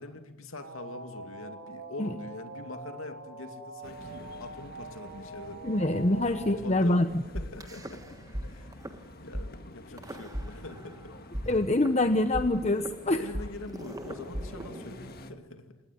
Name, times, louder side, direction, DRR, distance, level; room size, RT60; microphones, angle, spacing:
voice 1, 0.0-5.7 6.2-7.0 7.3-8.2 8.5-8.7 9.2-11.2 13.0-15.8, left 2 dB, 80° left, 7 dB, 2.5 m, -43 dB
sound 1, 0.6-6.6, right 2 dB, 85° right, 6.2 m, -44 dB
sound 2, 3.8-15.3, left 1 dB, 45° left, 1.8 m, -49 dB
voice 2, 5.6-7.1 11.5-13.2, left 1 dB, 30° left, 9 dB, 0.9 m, -25 dB
sound 3, 7.3-8.4 8.7-8.9 9.3-9.4 10.0-11.0 11.3-15.3, equal, 15° right, 1.4 m, -38 dB
27.0 x 19.0 x 9.3 m, 1.1 s
head